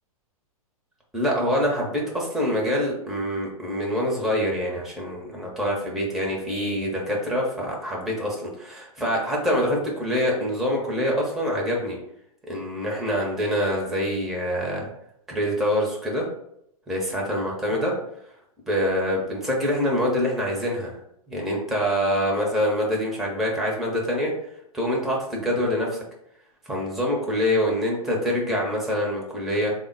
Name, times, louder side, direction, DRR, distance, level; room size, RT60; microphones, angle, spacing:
voice 1, 1.1-12.0 12.5-14.9 15.3-16.3 16.9-17.9 18.7-21.0 21.3-24.3 24.7-26.0 26.7-29.7, equal, ahead, -2 dB, 0.7 m, -25 dB
3.5 x 2.1 x 3.7 m, 0.74 s
figure-of-eight pair, 110°, 19 cm